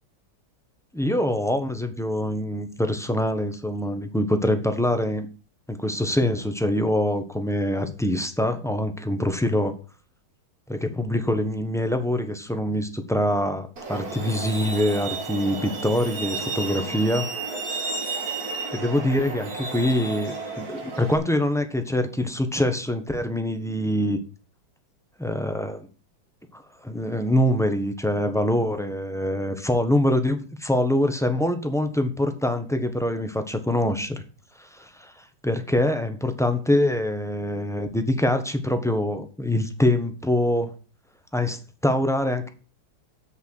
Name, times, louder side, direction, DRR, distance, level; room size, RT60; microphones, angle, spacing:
voice 1, 0.9-5.3 5.7-9.7 10.7-17.3 18.7-24.2 25.2-25.9 26.5-34.2 34.6-40.7 41.3-42.5, left 1 dB, ahead, 7 dB, 0.9 m, -24 dB
Truck, 13.8-21.2, right 3 dB, 50° right, 2.1 m, -32 dB
8.0 x 6.9 x 6.4 m, 0.36 s
omnidirectional pair, 2.2 m